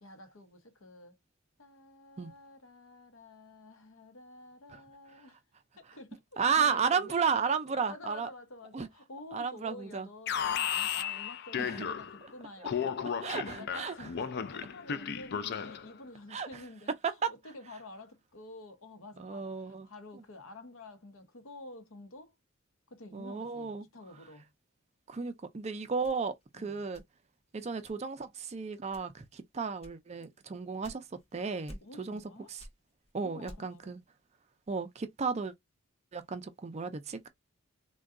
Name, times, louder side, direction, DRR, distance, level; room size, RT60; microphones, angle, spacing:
voice 1, 0.0-1.2 1.6-5.4 5.8-7.2 7.8-22.3 22.9-24.5 26.5-26.8 31.8-32.5 33.2-34.0, left 2 dB, 70° left, 0.8 m, -50 dB
voice 2, 6.4-8.3 8.7-8.9 9.3-10.1 11.6-11.9 13.2-13.9 16.3-16.5 17.0-17.3 19.2-19.9 23.1-23.9 25.1-27.0 27.5-31.1 31.3-32.2 32.5-32.6 33.1-34.0 34.7-35.5 36.1-37.3, right 5 dB, 30° right, 0.4 m, -33 dB
Alarm, 10.3-12.3 12.6-15.9, left 7 dB, 50° left, 0.4 m, -34 dB
sound 1, 26.0-27.4 27.8-28.3 28.9-29.3 29.8-31.3 31.7-32.3 32.6-33.9, equal, 30° left, 0.7 m, -51 dB
3.7 x 2.2 x 2.4 m
head